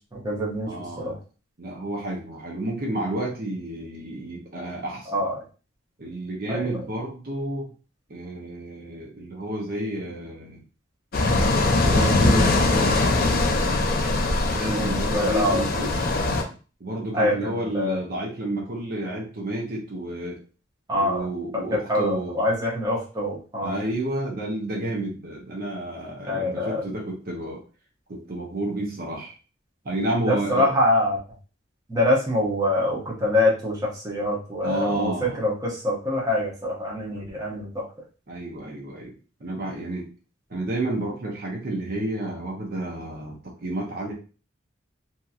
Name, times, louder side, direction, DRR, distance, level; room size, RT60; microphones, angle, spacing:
voice 1, 0.1-1.2 5.1-5.3 6.5-6.7 14.7-15.6 17.1-18.0 20.9-21.3 21.5-23.8 26.3-26.8 30.2-31.2 31.9-37.9, left 1 dB, 20° right, -4 dB, 0.8 m, -25 dB
voice 2, 0.6-1.2 1.6-5.1 6.0-7.7 8.1-10.6 11.3-13.1 14.5-16.2 16.8-20.4 21.0-22.4 23.6-27.6 28.1-29.3 29.8-30.7 34.6-35.4 38.3-40.1 40.5-44.1, right 1 dB, 50° right, -2 dB, 0.7 m, -30 dB
sound 1, 11.1-16.4, left 2 dB, 50° left, 0.4 m, -21 dB
2.8 x 2.7 x 2.3 m, 0.36 s
head